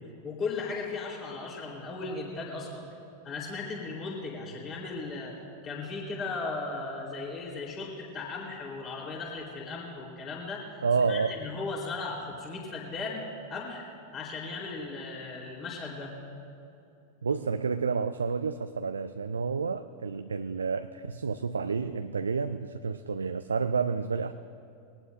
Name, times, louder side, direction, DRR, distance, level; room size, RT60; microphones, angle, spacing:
voice 1, 0.0-2.8 3.2-5.4 5.6-10.8 11.1-13.2 13.5-13.8 14.1-16.1, left 3 dB, 30° left, -3 dB, 3.7 m, -36 dB
voice 2, 10.8-11.3 17.2-24.3, right 5 dB, 75° right, 10 dB, 0.4 m, -30 dB
22.0 x 18.5 x 2.6 m, 2.7 s
figure-of-eight pair, 90°, 0 cm